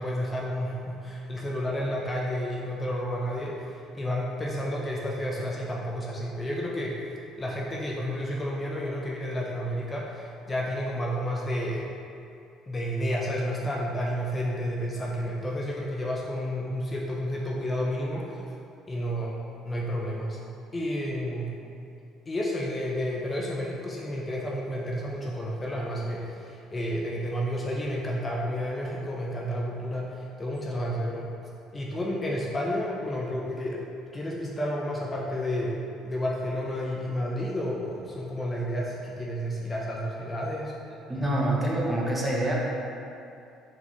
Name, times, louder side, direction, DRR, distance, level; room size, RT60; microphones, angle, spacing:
voice 1, 0.0-7.0 7.4-11.9 12.7-18.5 18.9-19.3 19.6-20.4 20.7-21.5 22.3-31.3 31.7-33.8 34.1-40.7, equal, 25° left, -3 dB, 0.5 m, -31 dB
voice 2, 41.1-42.5, right 1 dB, 15° right, -4 dB, 0.7 m, -26 dB
4.0 x 2.4 x 3.0 m, 2.6 s
supercardioid pair, 75°, 0 cm